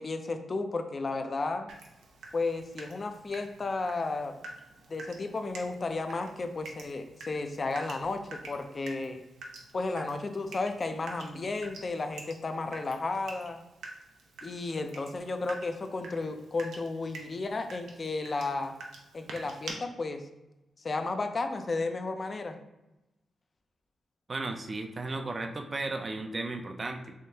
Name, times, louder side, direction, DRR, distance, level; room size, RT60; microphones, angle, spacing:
voice 1, 0.0-1.7 2.3-4.3 4.9-9.2 9.7-13.6 14.4-18.7 19.1-20.2 20.8-22.6, left 3 dB, 40° left, 6 dB, 0.4 m, -33 dB
Water tap faucet / Drip, 1.7-19.7, right 3 dB, 90° right, 0.6 m, -48 dB
voice 2, 24.3-27.1, right 2 dB, 35° right, 5 dB, 0.4 m, -35 dB
3.5 x 3.2 x 2.7 m, 0.98 s
cardioid pair, 80°, 0 cm